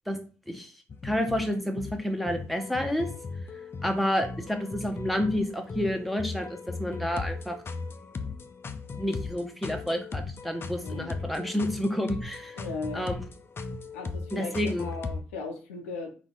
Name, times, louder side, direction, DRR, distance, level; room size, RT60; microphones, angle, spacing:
sound 1, 0.9-15.2, left 4 dB, 35° left, 0.5 m, -38 dB
voice 1, 1.0-3.1 3.8-7.6 9.0-12.6 12.9-13.2 14.3-14.8, equal, ahead, 4 dB, 0.8 m, -29 dB
voice 2, 10.8-11.1 12.6-13.1 13.9-16.1, left 3 dB, 80° left, 3 dB, 0.6 m, -37 dB
4.0 x 2.5 x 3.6 m, 0.37 s
figure-of-eight pair, 45°, 7 cm